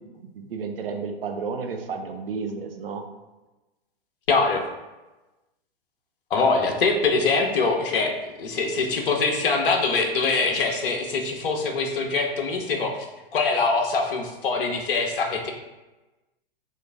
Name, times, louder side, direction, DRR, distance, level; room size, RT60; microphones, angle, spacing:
voice 1, 0.0-3.0, right 5 dB, 70° right, 5 dB, 0.6 m, -32 dB
voice 2, 4.3-4.6 6.3-13.1 13.3-15.5, left 4 dB, 60° left, 3 dB, 0.7 m, -23 dB
3.9 x 2.5 x 3.3 m, 1.1 s
figure-of-eight pair, 105°, 30 cm